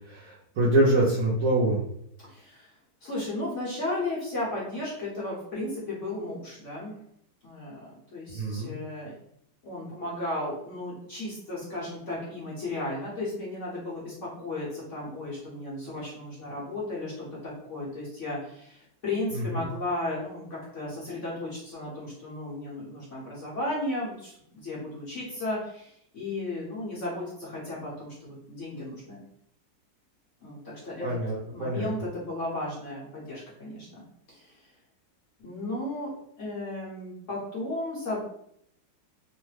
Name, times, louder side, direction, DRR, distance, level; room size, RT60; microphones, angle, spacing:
voice 1, 0.1-1.8 8.3-8.7 19.6-19.7 31.0-31.9, right 1 dB, 70° right, -6 dB, 0.8 m, -25 dB
voice 2, 2.2-2.7 3.0-7.0 7.4-9.1 9.6-29.2 30.4-31.1 31.5-34.6 35.4-36.1 36.4-38.2, left 2 dB, 50° left, -7 dB, 1.0 m, -35 dB
3.1 x 2.1 x 3.1 m, 0.72 s
omnidirectional pair, 2.0 m